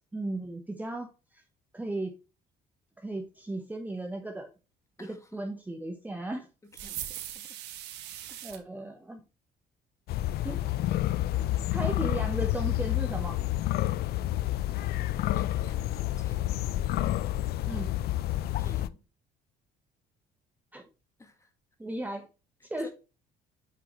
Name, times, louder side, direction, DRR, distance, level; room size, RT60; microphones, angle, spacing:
voice 1, 0.1-1.1 1.3-1.4 1.7-2.1 3.0-4.5 5.3-6.5 8.4-9.2 10.4-10.6 11.7-13.4 17.7-17.9 20.7-20.9 21.8-22.3 22.7-22.9, right 1 dB, 10° right, 1.0 m, -35 dB
voice 2, 5.0-5.4 6.7-7.6 8.3-8.5 15.3-16.6 18.6-19.0 21.2-21.5 22.8-22.9, left 2 dB, 15° left, 1.7 m, -51 dB
sound 1, 6.7-8.6, right 12 dB, 90° right, 1.2 m, -40 dB
sound 2, 10.1-18.9, left 14 dB, 70° left, 0.5 m, -29 dB
8.3 x 4.8 x 3.0 m
cardioid pair, 110°, 17 cm